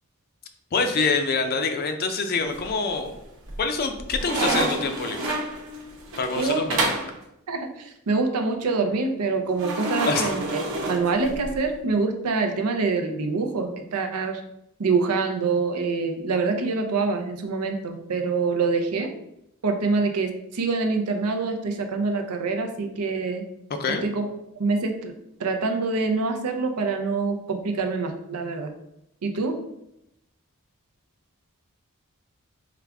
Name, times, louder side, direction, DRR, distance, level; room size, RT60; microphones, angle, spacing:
voice 1, 0.7-3.2 3.6-5.4 6.2-7.0 10.1-10.3 23.8-24.0, left 4 dB, 45° left, 7 dB, 0.4 m, -26 dB
sound 1, 2.5-3.1 3.5-7.1 9.6-11.6, right 2 dB, 60° right, 0.9 m, -28 dB
voice 2, 6.4-6.7 7.5-14.4 14.8-19.1 19.6-23.4 24.0-24.3 24.6-25.1 25.4-28.7 29.2-29.6, right 4 dB, 90° right, 5 dB, 0.6 m, -25 dB
4.7 x 2.4 x 3.4 m, 0.83 s
head